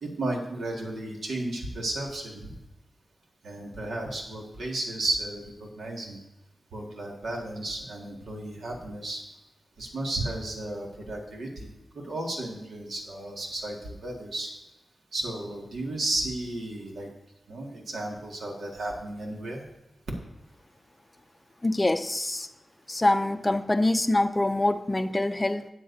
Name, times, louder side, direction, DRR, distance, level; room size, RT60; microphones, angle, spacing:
voice 1, 0.0-2.6 3.4-6.2 6.7-9.2 9.8-11.7 11.9-14.5 15.1-17.1 17.5-19.6, right 2 dB, 85° right, 0 dB, 2.0 m, -33 dB
voice 2, 21.6-22.5 22.9-25.7, left 2 dB, 15° left, 10 dB, 0.5 m, -25 dB
13.0 x 8.7 x 2.7 m, 1.0 s
wide cardioid pair, 155°, 0 cm